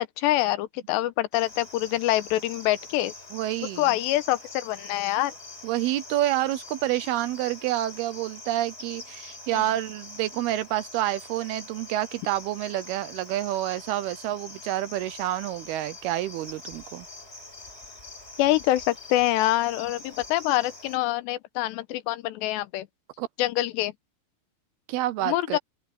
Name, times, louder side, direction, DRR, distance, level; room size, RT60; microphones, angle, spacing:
voice 1, 0.0-3.1 3.8-5.3 9.5-9.6 18.4-22.9 23.4-23.9 25.3-25.6, left 15 dB, 90° left, 3.1 m, -25 dB
Cricket, 1.3-21.0, left 2 dB, 15° left, 5.7 m, -44 dB
voice 2, 3.3-4.0 5.6-17.1 23.2-23.3 24.9-25.6, right 14 dB, 75° right, 2.5 m, -28 dB
open air
omnidirectional pair, 4.9 m